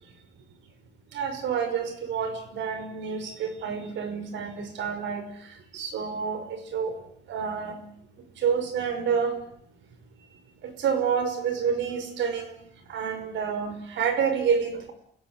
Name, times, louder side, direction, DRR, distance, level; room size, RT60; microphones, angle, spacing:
voice 1, 1.1-5.2 5.7-6.9 7.3-7.8 8.4-9.4 10.6-12.5 12.9-14.9, right 6 dB, 80° right, 9 dB, 5.6 m, -28 dB
29.5 x 16.0 x 9.9 m, 0.67 s
cardioid pair, 135°, 19 cm